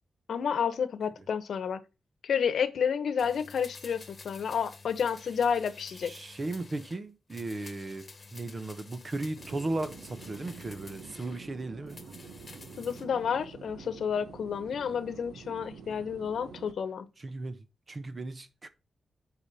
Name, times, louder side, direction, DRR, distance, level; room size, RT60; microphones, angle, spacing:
voice 1, 0.3-1.8 2.2-6.1 12.8-17.1, left 7 dB, 75° left, 1.0 m, -30 dB
sound 1, 3.2-7.0 7.3-11.4 11.9-13.1 13.4-13.5, left 4 dB, 35° left, 1.4 m, -50 dB
voice 2, 6.0-12.0 17.2-18.7, right 2 dB, 35° right, 1.1 m, -36 dB
sound 2, 9.3-16.7, right 6 dB, 85° right, 1.2 m, -48 dB
8.4 x 5.0 x 4.1 m
cardioid pair, 90°, 0 cm